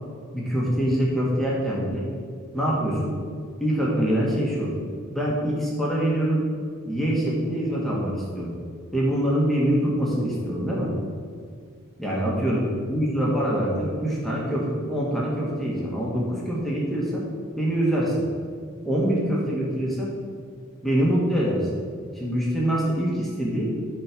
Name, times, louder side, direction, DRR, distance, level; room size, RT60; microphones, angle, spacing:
voice 1, 0.3-2.0 2.5-3.1 3.6-4.7 5.1-6.4 6.8-8.6 8.9-10.9 12.0-17.2 17.5-18.3 18.8-20.1 20.8-21.7 22.1-23.7, equal, ahead, -5 dB, 1.8 m, -24 dB
13.0 x 4.4 x 6.1 m, 2.1 s
head